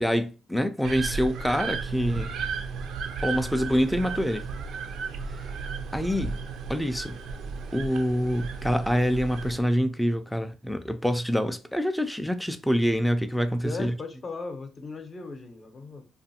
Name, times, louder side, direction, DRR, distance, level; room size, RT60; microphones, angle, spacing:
voice 1, 0.0-2.4 3.2-4.5 5.9-6.4 6.7-7.2 7.7-13.9, equal, 5° left, 0.3 m, -26 dB
sound 1, 0.8-9.6, right 5 dB, 75° right, 0.4 m, -34 dB
voice 2, 13.6-16.1, left 3 dB, 40° left, 0.6 m, -37 dB
2.6 x 2.4 x 2.6 m
cardioid pair, 90°, 0 cm